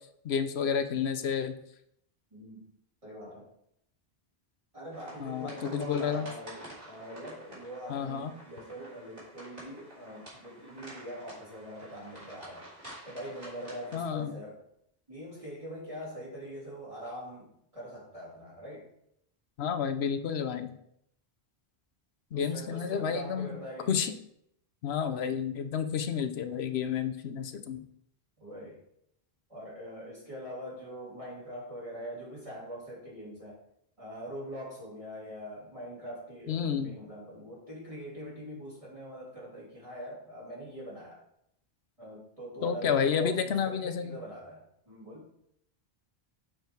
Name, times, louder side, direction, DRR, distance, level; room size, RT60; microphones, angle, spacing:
voice 1, 0.2-1.5 5.2-6.3 7.9-8.3 13.9-14.4 19.6-20.7 22.3-23.6 23.9-24.1 24.8-27.8 36.5-36.9 42.6-44.2, left 7 dB, 80° left, 10 dB, 1.0 m, -30 dB
voice 2, 2.3-2.6 3.0-3.5 4.7-12.7 13.0-14.6 15.1-18.9 22.3-24.0 28.4-28.8 29.5-33.6 34.0-41.2 42.0-45.3, equal, 30° right, -7 dB, 2.9 m, -43 dB
sound 1, 4.9-14.0, right 1 dB, 55° right, 3.7 m, -49 dB
7.2 x 5.7 x 4.5 m, 0.74 s
omnidirectional pair, 1.1 m